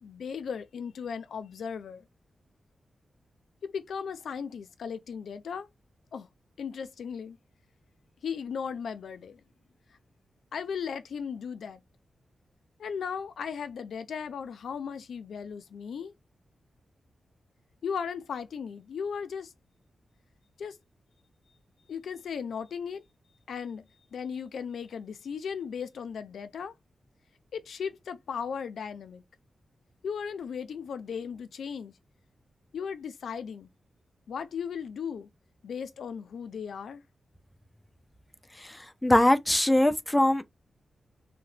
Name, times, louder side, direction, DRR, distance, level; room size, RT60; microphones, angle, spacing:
voice 1, 0.0-2.0 3.6-5.7 6.1-6.3 6.6-7.4 8.2-9.4 10.5-11.8 12.8-16.1 17.8-19.5 20.6-20.8 21.9-23.0 23.5-23.8 24.1-26.7 27.5-29.2 30.0-31.9 32.7-33.7 34.3-35.3 35.6-37.0, left 6 dB, 85° left, 0.4 m, -36 dB
voice 2, 39.0-40.4, left 1 dB, 10° left, 0.3 m, -21 dB
2.8 x 2.1 x 3.1 m
wide cardioid pair, 130°, 0 cm